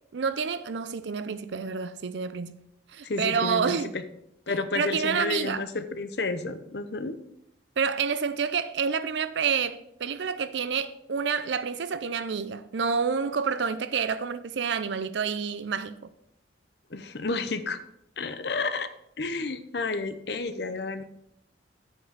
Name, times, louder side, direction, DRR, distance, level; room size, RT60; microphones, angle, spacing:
voice 1, 0.1-2.6 2.9-3.9 4.8-5.6 7.8-15.9, right 6 dB, 70° right, 0.5 m, -28 dB
voice 2, 3.0-4.0 4.5-7.2 16.9-17.8 18.2-18.9 19.2-21.0, left 3 dB, 60° left, 0.7 m, -31 dB
7.9 x 5.4 x 6.6 m
head